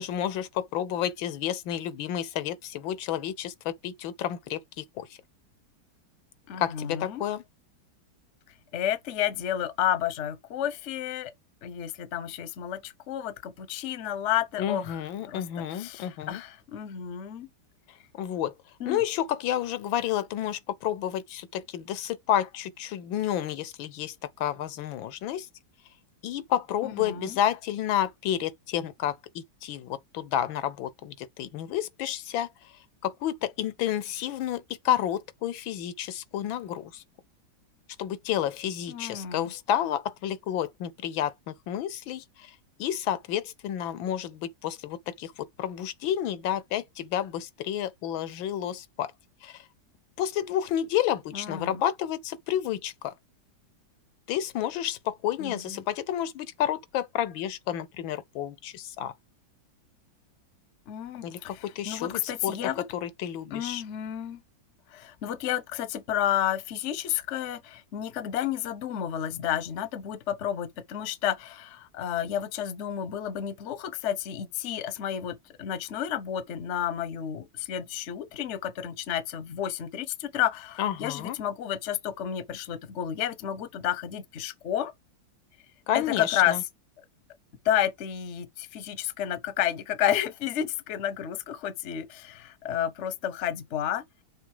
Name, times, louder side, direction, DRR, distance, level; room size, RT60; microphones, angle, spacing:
voice 1, 0.0-5.1 6.6-7.4 14.6-16.4 18.2-18.5 18.8-25.5 26.2-32.5 33.0-37.0 38.0-49.1 49.4-49.6 50.2-53.1 54.3-59.1 61.2-62.6 62.9-63.8 80.8-81.4 85.9-86.6, left 11 dB, 80° left, 1.5 m, -30 dB
voice 2, 6.5-7.2 8.7-11.3 11.6-15.0 15.3-15.4 15.7-17.5 18.8-19.0 26.8-27.4 38.9-39.5 51.3-51.8 55.4-55.8 60.9-62.8 63.5-64.4 64.9-84.9 85.9-86.6 87.6-94.0, left 10 dB, 50° left, 0.9 m, -31 dB
6.2 x 3.9 x 4.8 m
omnidirectional pair, 2.1 m